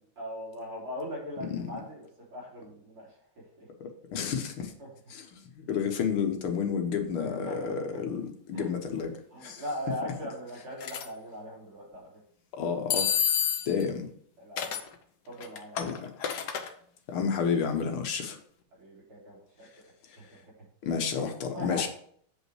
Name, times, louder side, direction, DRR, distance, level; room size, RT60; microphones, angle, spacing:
voice 1, 0.2-2.0 2.3-3.1 3.6-3.7 4.8-4.9 7.4-7.8 8.5-8.7 9.3-12.1 14.4-14.8 15.3-15.8 18.8-19.7 20.4-20.5 21.5-21.9, equal, 85° right, -5 dB, 4.3 m, -39 dB
voice 2, 3.8-4.7 5.1-9.1 9.4-9.6 12.5-13.1 13.7-14.1 15.8-16.1 17.1-18.4 20.1-20.2 20.8-21.9, left 6 dB, 80° left, 5 dB, 2.0 m, -31 dB
sound 1, 10.8-11.1 12.9-13.8 14.6-14.9 15.4-16.7, left 8 dB, 60° left, 1.2 m, -28 dB
8.3 x 5.4 x 4.7 m, 0.62 s
omnidirectional pair, 2.3 m